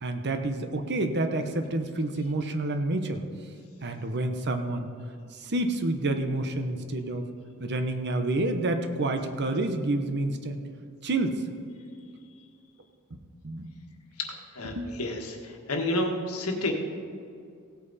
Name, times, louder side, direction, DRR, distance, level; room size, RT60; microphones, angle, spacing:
voice 1, 0.0-3.2 3.8-4.9 5.3-7.3 7.6-10.6 11.0-11.5 13.4-13.7 14.6-14.9, right 2 dB, 50° right, 7 dB, 0.9 m, -28 dB
voice 2, 14.2-16.7, left 2 dB, 85° left, 2 dB, 1.6 m, -30 dB
17.0 x 8.3 x 4.2 m, 2.4 s
head